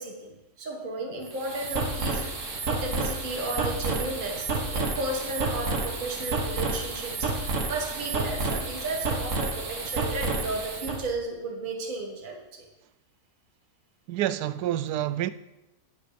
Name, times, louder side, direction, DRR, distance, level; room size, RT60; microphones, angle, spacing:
voice 1, 0.0-2.3 2.7-12.7, right 2 dB, 30° right, 1.6 m, -34 dB
sound 1, 1.2-11.0, right 3 dB, 50° right, 1.8 m, -30 dB
voice 2, 14.1-15.3, right 12 dB, 80° right, 1.1 m, -28 dB
9.4 x 9.3 x 5.2 m
omnidirectional pair, 1.7 m